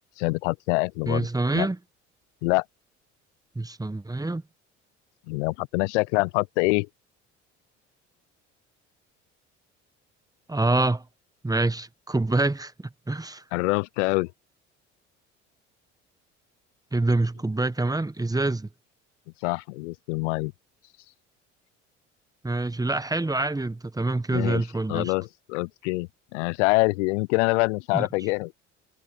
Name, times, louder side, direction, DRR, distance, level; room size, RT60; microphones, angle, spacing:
voice 1, 0.2-1.3 1.5-1.7 2.4-2.7 5.3-6.9 13.5-14.3 19.4-20.5 24.3-28.5, left 26 dB, 70° left, 0.6 m, -25 dB
voice 2, 1.1-1.8 3.5-4.4 10.5-11.0 11.4-12.7 13.1-13.4 16.9-18.7 22.4-25.1 27.9-28.1, right 2 dB, 10° right, 1.4 m, -26 dB
hypercardioid pair, 60°, 37 cm